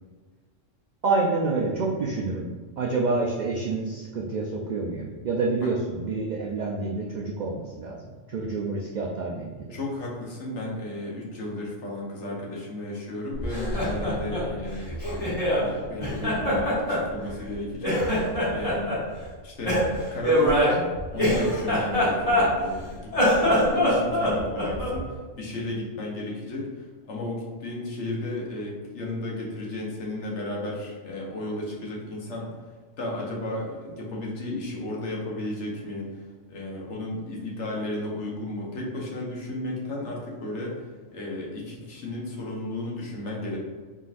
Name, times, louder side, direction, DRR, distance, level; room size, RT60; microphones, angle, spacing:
voice 1, 1.0-2.5 2.8-9.8, right 3 dB, 85° right, -2 dB, 0.4 m, -28 dB
voice 2, 9.7-18.0 18.5-19.0 19.4-26.7 27.1-32.5 33.0-36.2 36.5-40.8 41.1-43.6, left 1 dB, 65° left, -2 dB, 1.2 m, -34 dB
Laughter, 13.4-15.7 16.0-17.5 17.8-19.0 19.6-22.7 23.1-25.0, equal, 30° left, 1.6 m, -24 dB
4.2 x 3.8 x 2.5 m, 1.4 s
omnidirectional pair, 1.3 m